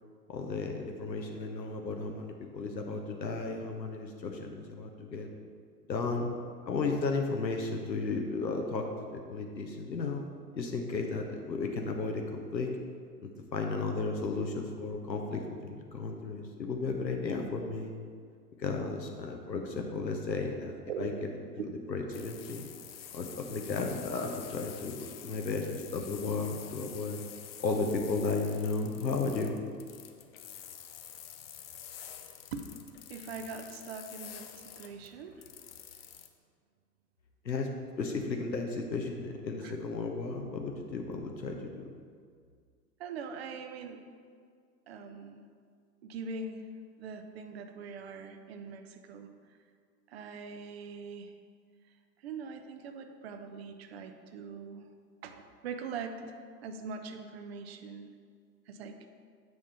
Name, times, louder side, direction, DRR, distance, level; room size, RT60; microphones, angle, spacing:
voice 1, 0.3-5.3 5.9-6.3 6.7-10.3 10.5-12.7 13.2-17.9 18.6-21.1 21.6-22.6 23.1-27.2 27.6-29.6 37.4-37.7 38.0-41.9, left 3 dB, 85° left, 3 dB, 0.8 m, -34 dB
voice 2, 21.6-22.2 32.5-32.7 33.1-35.4 39.6-39.7 43.0-44.0 44.9-45.5 46.0-46.6 47.0-49.3 50.1-51.3 52.2-54.9 55.2-56.3 56.6-58.1 58.7-59.1, right 5 dB, 40° right, 6 dB, 0.6 m, -42 dB
sound 1, 22.1-36.3, left 9 dB, 40° left, 0.5 m, -48 dB
7.7 x 3.6 x 5.6 m, 2.1 s
figure-of-eight pair, 100°, 50 cm